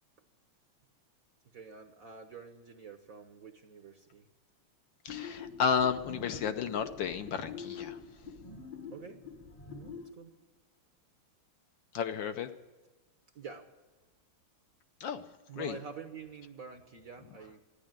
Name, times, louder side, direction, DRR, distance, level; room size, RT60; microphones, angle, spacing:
voice 1, 1.4-4.3 8.8-9.2 9.7-10.4 13.3-13.7 15.5-17.6, right 6 dB, 55° right, 4 dB, 1.0 m, -47 dB
voice 2, 5.0-8.0 11.9-12.5 15.0-15.2 15.6-15.7, left 7 dB, 70° left, 8 dB, 1.3 m, -32 dB
sound 1, 5.1-10.1, left 6 dB, 30° left, 0.7 m, -45 dB
13.0 x 9.9 x 8.9 m, 1.3 s
omnidirectional pair, 2.3 m